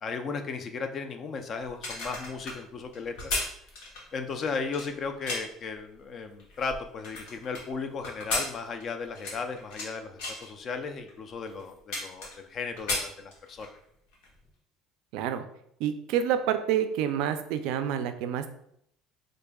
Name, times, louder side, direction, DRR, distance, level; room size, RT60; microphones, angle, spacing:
voice 1, 0.0-3.3 4.1-13.7, left 4 dB, 40° left, 7 dB, 0.4 m, -35 dB
sound 1, 1.6-5.6 6.2-7.6 8.0-9.9 10.2-10.5 11.1-11.2 11.5-12.5 12.8-13.8 14.1-14.3, left 2 dB, 85° left, 1.1 m, -34 dB
voice 2, 15.1-15.4 15.8-18.5, right 9 dB, 75° right, 9 dB, 0.3 m, -28 dB
4.7 x 2.5 x 2.2 m, 0.72 s
cardioid pair, 120°, 0 cm